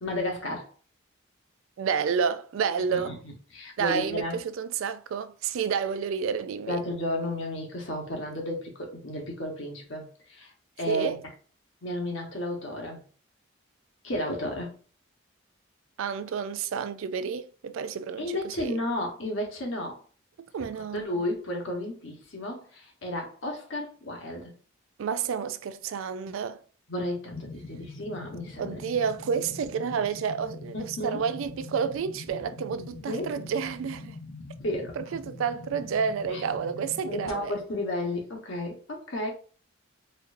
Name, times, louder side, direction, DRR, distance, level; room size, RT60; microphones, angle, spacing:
voice 1, 0.0-0.7 2.9-4.4 6.7-11.2 11.8-13.0 14.0-14.7 18.2-20.0 20.9-24.5 26.9-28.8 30.7-31.2 32.8-33.3 34.6-34.9 36.3-36.4 37.1-39.3, left 1 dB, 65° left, 1.1 m, -33 dB
voice 2, 1.8-3.2 3.8-6.8 10.9-11.2 16.0-18.8 20.5-21.1 25.0-26.6 28.6-34.2 35.0-37.6, right 6 dB, 70° right, 0.3 m, -30 dB
sound 1, 27.3-37.3, left 3 dB, 85° left, 0.8 m, -43 dB
4.3 x 2.6 x 2.5 m
head